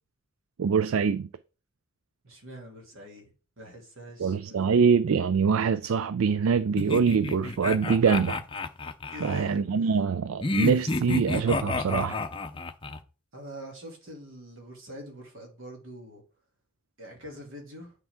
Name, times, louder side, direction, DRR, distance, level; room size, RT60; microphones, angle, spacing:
voice 1, 0.6-1.3 4.2-8.4 9.2-12.2, right 6 dB, 80° right, 0.4 m, -24 dB
voice 2, 2.2-3.3 3.6-4.8 9.1-9.9 13.3-16.2 17.0-17.9, equal, 65° right, 2.7 m, -44 dB
sound 1, 6.8-9.5 10.4-13.0, left 2 dB, 25° left, 0.6 m, -30 dB
8.8 x 4.7 x 3.6 m
head